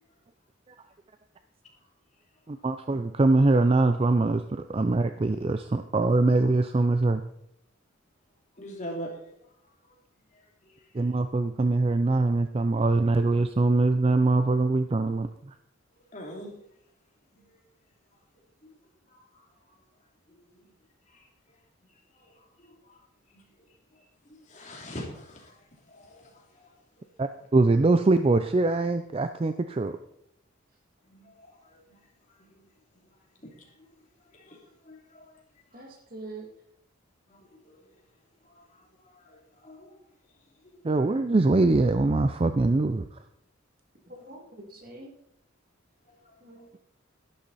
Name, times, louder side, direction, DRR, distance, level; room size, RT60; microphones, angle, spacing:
voice 1, 2.5-7.2 10.9-15.5 27.2-30.0 40.8-43.0, right 2 dB, 30° right, 9 dB, 0.4 m, -23 dB
voice 2, 8.6-9.1 16.1-16.5 18.6-18.7 23.3-23.4 24.5-25.5 25.9-26.3 26.6-26.7 31.1-31.8 33.4-33.5 34.5-34.6 34.9-35.2 37.3-37.4 39.3-39.4 39.6-39.9, equal, 35° left, 0 dB, 2.8 m, -41 dB
voice 3, 35.7-36.5 44.1-45.1 46.4-46.7, right 2 dB, 45° right, 2 dB, 2.3 m, -44 dB
12.0 x 11.5 x 4.1 m, 0.76 s
head